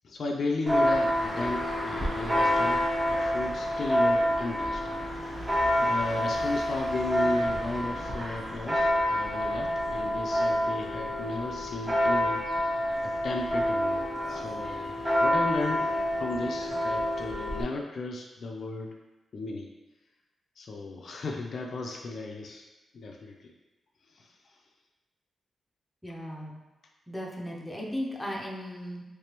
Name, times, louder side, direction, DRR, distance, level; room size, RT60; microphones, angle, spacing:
voice 1, 0.0-2.8 3.1-4.8 5.8-12.4 13.0-18.9 19.3-19.7 20.6-22.6 22.9-23.5 24.2-24.3, left 2 dB, 55° left, 1 dB, 0.4 m, -35 dB
Church bell, 0.7-17.6, equal, 25° right, 0.8 m, -28 dB
voice 2, 26.0-26.6 27.1-29.0, equal, 5° left, -3 dB, 0.6 m, -36 dB
3.3 x 3.2 x 2.9 m, 1.1 s
wide cardioid pair, 125°, 0 cm